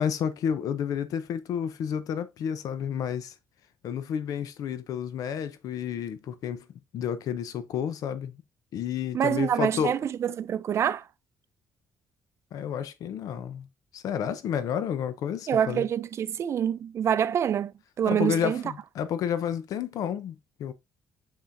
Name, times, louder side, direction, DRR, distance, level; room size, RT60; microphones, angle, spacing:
voice 1, 0.0-3.3 3.8-6.7 6.9-8.4 8.7-10.0 12.5-13.7 13.9-15.8 18.0-20.3 20.6-20.7, left 8 dB, 65° left, 0.7 m, -30 dB
voice 2, 9.1-11.0 15.5-17.7 18.0-18.6, right 9 dB, 45° right, 0.5 m, -26 dB
6.7 x 5.8 x 2.6 m
cardioid pair, 135°, 6 cm